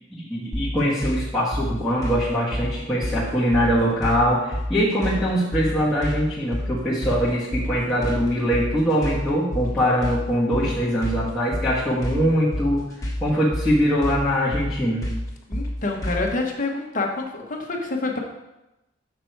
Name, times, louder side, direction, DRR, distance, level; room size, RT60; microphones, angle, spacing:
voice 1, 0.1-12.8 13.2-15.0, equal, ahead, -10 dB, 1.4 m, -22 dB
sound 1, 0.5-16.4, left 1 dB, 15° left, 1.4 m, -29 dB
voice 2, 15.5-18.2, left 3 dB, 45° left, 1 dB, 1.1 m, -27 dB
6.5 x 5.9 x 4.6 m, 0.97 s
head